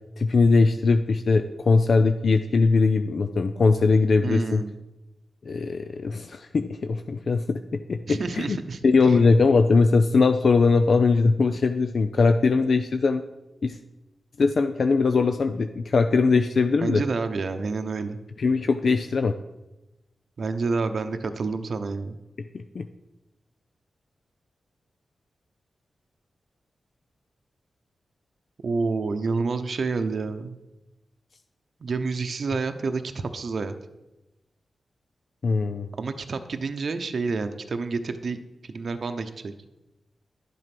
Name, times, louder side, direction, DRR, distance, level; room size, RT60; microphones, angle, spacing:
voice 1, 0.2-4.6 5.5-8.6 8.8-13.2 13.6-13.8 14.4-17.0 18.4-19.4 22.5-22.9 35.4-35.9, left 4 dB, 65° left, 7 dB, 0.5 m, -21 dB
voice 2, 4.2-4.8 8.1-8.8 9.1-9.2 16.8-18.2 20.4-22.2 28.6-30.6 31.8-33.7 36.0-38.4 38.6-39.5, right 4 dB, 65° right, 8 dB, 0.7 m, -29 dB
11.0 x 7.7 x 6.0 m, 0.99 s
cardioid pair, 65°, 0 cm